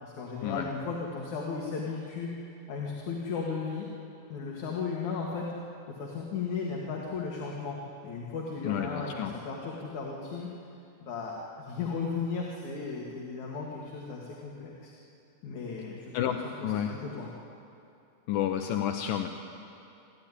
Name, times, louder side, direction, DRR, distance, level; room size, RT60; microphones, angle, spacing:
voice 1, 0.0-2.3 2.7-3.9 4.3-5.5 6.0-7.8 8.0-10.5 11.0-14.9 15.4-17.3, left 5 dB, 50° left, -3 dB, 3.0 m, -35 dB
voice 2, 8.6-9.3 16.1-16.9 18.3-19.3, left 10 dB, 75° left, 4 dB, 2.1 m, -30 dB
28.0 x 13.0 x 9.9 m, 2.6 s
omnidirectional pair, 5.0 m